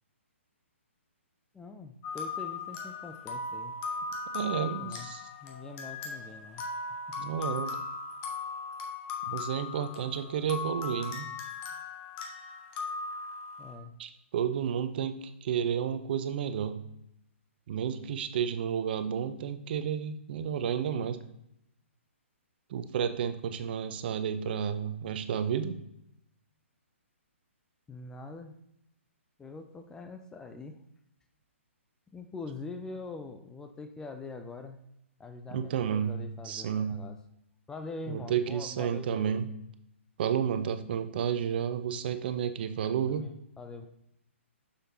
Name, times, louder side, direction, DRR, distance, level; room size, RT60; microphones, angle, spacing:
voice 1, 1.5-3.8 4.6-5.1 5.4-6.6 6.9-7.2 13.6-13.9 27.9-28.6 29.4-30.8 32.1-34.8 35.2-37.2 37.7-39.5 43.1-43.9, left 3 dB, 10° left, 7 dB, 0.4 m, -44 dB
sound 1, 2.0-13.7, left 4 dB, 30° left, 1.1 m, -38 dB
voice 2, 4.3-5.3 7.2-7.8 9.3-11.3 14.0-16.9 17.7-21.3 22.7-25.8 35.5-37.1 38.1-39.5 40.2-43.3, right 8 dB, 45° right, 11 dB, 0.6 m, -31 dB
6.6 x 6.5 x 2.7 m, 0.79 s
figure-of-eight pair, 130°, 7 cm